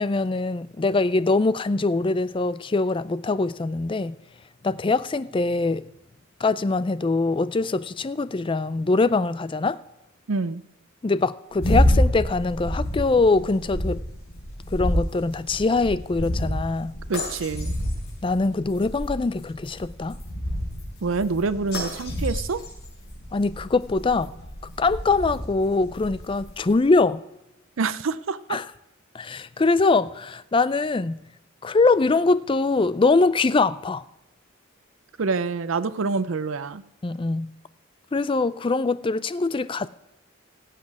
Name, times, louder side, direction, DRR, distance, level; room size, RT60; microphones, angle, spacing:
voice 1, 0.0-4.2 4.6-5.9 6.4-9.8 11.0-14.0 14.7-17.0 18.2-20.2 23.3-24.3 24.8-27.2 28.5-28.7 29.1-31.2 31.6-34.0 37.0-37.5 38.1-39.9, left 3 dB, 25° left, 0.4 m, -23 dB
voice 2, 10.3-10.6 17.1-17.7 21.0-22.6 27.8-28.6 35.2-36.8, right 4 dB, 70° right, 0.5 m, -26 dB
sound 1, 11.5-26.7, equal, 60° left, 5.7 m, -28 dB
16.5 x 7.7 x 4.8 m
head